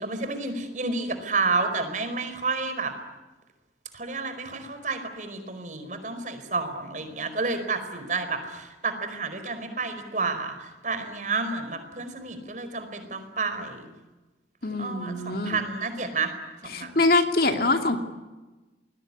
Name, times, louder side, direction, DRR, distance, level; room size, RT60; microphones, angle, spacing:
voice 1, 0.0-2.9 3.9-13.9 14.7-16.3 16.6-17.0, right 4 dB, 45° right, 9 dB, 4.7 m, -30 dB
voice 2, 14.6-15.6 16.7-18.0, left 2 dB, 55° left, 5 dB, 2.7 m, -24 dB
28.5 x 21.0 x 9.8 m, 1.2 s
head